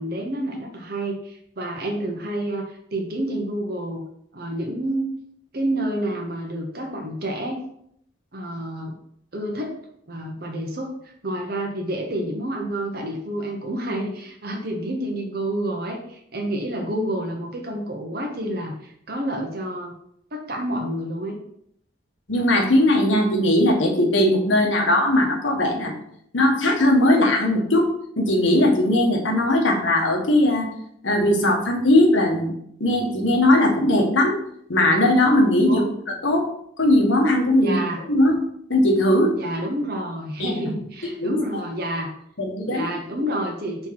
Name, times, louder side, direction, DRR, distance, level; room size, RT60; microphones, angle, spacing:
voice 1, 0.0-4.1 4.3-5.1 5.5-7.6 8.3-9.0 9.3-9.8 10.1-19.9 20.3-21.4 35.7-35.9 37.6-38.0 39.3-42.1 42.7-43.9, right 1 dB, 50° right, 1 dB, 1.0 m, -29 dB
voice 2, 22.3-25.9 26.3-27.9 28.2-30.7 31.0-32.5 32.8-34.3 34.7-35.8 36.2-36.5 36.8-37.8 38.1-38.3 38.7-39.4 40.4-40.6 41.0-41.4 42.4-42.8, left 1 dB, 80° left, 0 dB, 1.4 m, -19 dB
4.5 x 4.4 x 5.9 m, 0.70 s
head